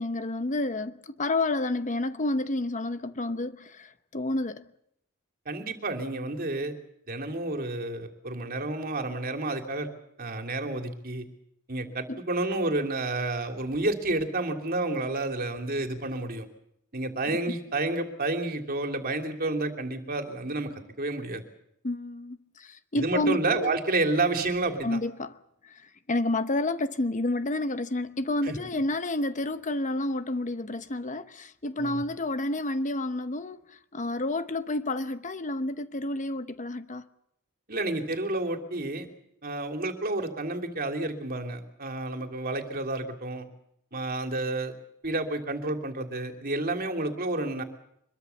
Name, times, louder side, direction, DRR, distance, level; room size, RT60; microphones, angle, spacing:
voice 1, 0.0-4.7 12.1-12.2 17.5-17.6 21.8-23.7 24.8-25.4 25.6-37.1, left 2 dB, 35° left, 0.9 m, -30 dB
voice 2, 5.5-6.7 7.1-9.9 10.2-11.2 11.7-16.5 16.9-20.7 21.0-21.4 22.9-25.0 28.5-28.6 31.8-32.0 37.7-39.1 39.4-43.5 43.9-44.7 45.0-47.6, right 2 dB, 45° right, 3.0 m, -30 dB
24.5 x 22.0 x 7.1 m
head